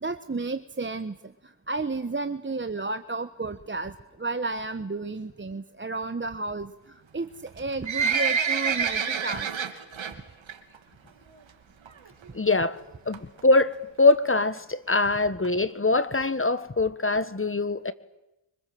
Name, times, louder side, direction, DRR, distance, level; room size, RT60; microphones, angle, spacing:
voice 1, 0.0-9.5, right 3 dB, 25° right, 1.2 m, -32 dB
Livestock farm animals working animals, 7.5-10.1 10.5-10.8 11.1-11.2 11.9-12.0 12.2-12.3 12.5-12.6 13.1-13.4 14.0-14.1 14.3-14.4 14.6-14.7 14.9-15.0 15.4-15.5 16.0-16.1 16.6-16.7, right 6 dB, 70° right, 3.0 m, -27 dB
voice 2, 12.3-12.8 13.1-17.9, left 3 dB, 25° left, 1.5 m, -23 dB
25.5 x 25.0 x 7.9 m
cardioid pair, 65°, 49 cm